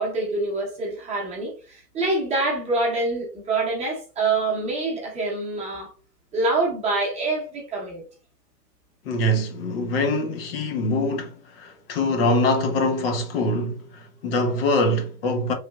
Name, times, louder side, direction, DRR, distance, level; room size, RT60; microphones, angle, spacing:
voice 1, 0.0-5.9 6.3-8.0, right 3 dB, 15° right, 0.9 m, -26 dB
voice 2, 9.0-15.5, left 1 dB, 35° left, 0.7 m, -24 dB
3.2 x 2.8 x 2.3 m
hypercardioid pair, 125°, 49 cm